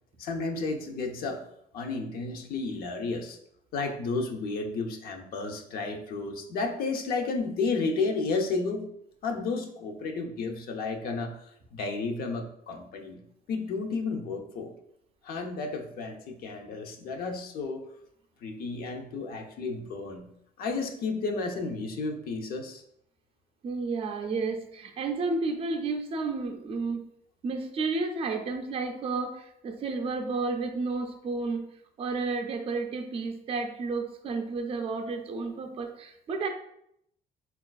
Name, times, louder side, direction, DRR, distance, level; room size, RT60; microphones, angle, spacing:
voice 1, 0.2-1.4 1.7-3.4 3.7-8.9 9.2-13.2 13.5-14.7 15.2-17.9 18.4-20.3 20.6-22.8, left 3 dB, 60° left, 4 dB, 0.4 m, -32 dB
voice 2, 23.6-27.1 27.4-36.5, right 3 dB, 35° right, 4 dB, 0.4 m, -31 dB
3.8 x 2.3 x 2.2 m, 0.75 s
cardioid pair, 110°, 17 cm